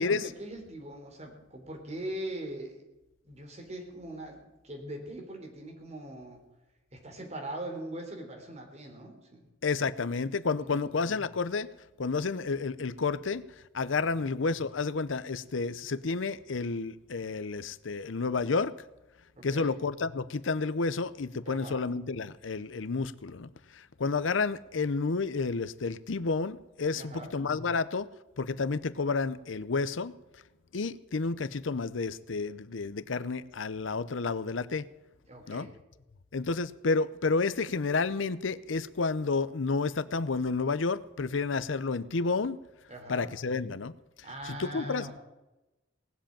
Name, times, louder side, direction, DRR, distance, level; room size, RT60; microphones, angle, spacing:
voice 1, 0.0-2.8 3.2-6.4 6.9-9.5 10.6-10.9 14.0-14.3 19.4-19.7 21.4-21.8 26.9-27.3 35.3-35.7 42.9-43.3 44.2-45.2, right 1 dB, 35° right, 3.7 m, -41 dB
voice 2, 9.6-11.7 12.0-13.4 13.7-18.7 19.4-28.1 28.4-30.1 30.7-34.9 35.5-35.7 36.3-42.6 43.1-43.9 44.5-45.1, left 4 dB, 85° left, 0.7 m, -30 dB
19.0 x 7.8 x 8.7 m
head